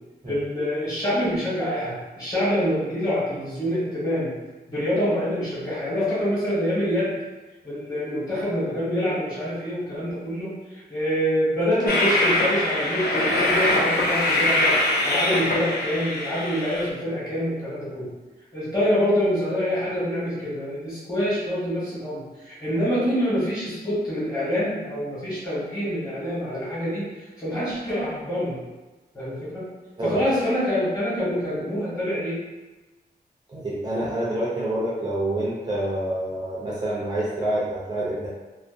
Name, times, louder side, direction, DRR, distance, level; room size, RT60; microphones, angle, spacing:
voice 1, 0.2-4.3 4.7-7.2 7.6-14.8 15.0-18.1 18.5-28.6 29.1-29.7 30.0-32.4, equal, 20° left, -10 dB, 1.2 m, -26 dB
Train, 11.9-16.9, left 1 dB, 65° left, 0.4 m, -23 dB
voice 2, 30.0-30.3 33.5-38.3, right 1 dB, 25° right, -7 dB, 0.4 m, -27 dB
2.4 x 2.1 x 2.4 m, 1.2 s
wide cardioid pair, 170°, 17 cm